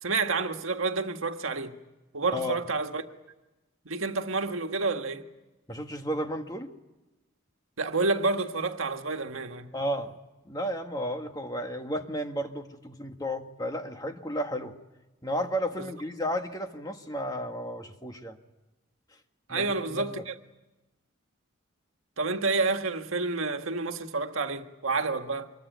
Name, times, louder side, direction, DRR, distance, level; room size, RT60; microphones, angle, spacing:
voice 1, 0.0-1.8 2.1-3.0 3.8-5.3 7.8-9.7 15.8-15.9 19.5-20.4 22.2-25.5, right 3 dB, 75° right, 1.7 m, -29 dB
voice 2, 5.7-6.7 9.7-10.2 10.4-14.7 15.2-18.4 19.5-20.1, equal, 20° left, 1.7 m, -33 dB
25.5 x 22.5 x 9.3 m
head